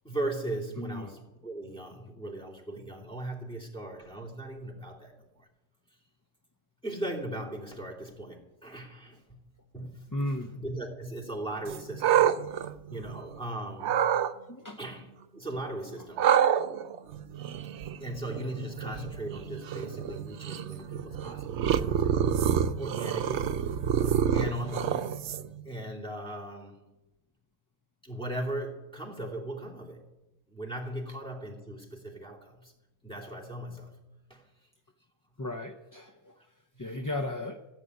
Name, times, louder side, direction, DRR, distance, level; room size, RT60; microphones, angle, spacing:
voice 1, 0.0-5.5 6.8-9.4 9.7-10.0 10.5-12.3 12.6-14.2 14.8-16.3 18.0-22.3 22.8-23.6 24.0-25.2 25.6-26.9 28.0-30.1 30.5-32.7 33.0-33.9 34.3-34.4 36.4-36.5, right 1 dB, 5° left, 3.0 m, -38 dB
voice 2, 0.8-1.1 10.1-10.5 14.5-14.8 35.4-36.3 36.8-37.6, left 1 dB, 20° left, 0.7 m, -35 dB
sound 1, 11.7-13.4 13.8-14.3 16.2-25.6, right 9 dB, 85° right, 1.0 m, -28 dB
15.0 x 8.1 x 9.4 m
omnidirectional pair, 1.1 m